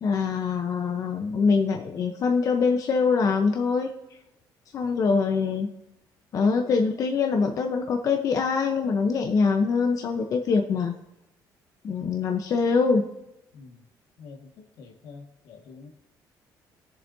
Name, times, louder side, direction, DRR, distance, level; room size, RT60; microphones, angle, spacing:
voice 1, 0.0-3.9 4.7-5.7 6.3-11.0 11.8-13.1, left 5 dB, 50° left, 3 dB, 0.8 m, -24 dB
voice 2, 13.5-13.9 14.2-15.9, left 4 dB, 85° left, 2 dB, 1.8 m, -47 dB
19.0 x 7.2 x 2.7 m, 0.89 s
cardioid pair, 140°, 8 cm